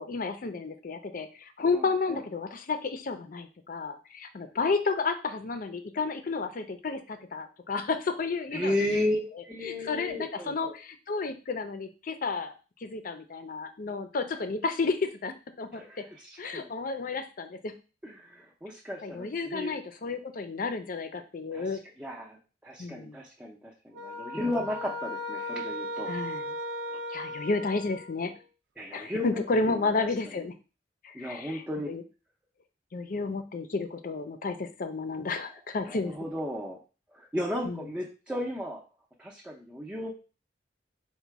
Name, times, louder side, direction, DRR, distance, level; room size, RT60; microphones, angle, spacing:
voice 1, 0.0-9.2 9.6-12.5 12.8-16.0 16.4-17.7 19.0-21.8 22.8-23.2 24.4-24.5 26.1-26.5 27.1-28.3 28.9-30.5 31.0-32.0 32.9-36.1 37.6-37.8, left 4 dB, 50° left, 8 dB, 0.5 m, -32 dB
voice 2, 1.7-2.2 8.5-10.7 15.7-16.7 18.0-19.7 21.5-22.4 22.6-26.1 28.8-29.4 29.7-29.9 31.1-31.9 35.9-36.8 37.1-38.8 39.2-40.1, left 1 dB, 10° right, -3 dB, 0.5 m, -34 dB
sound 1, 23.9-28.4, equal, 85° right, 0.5 m, -37 dB
4.1 x 2.2 x 4.6 m, 0.34 s
head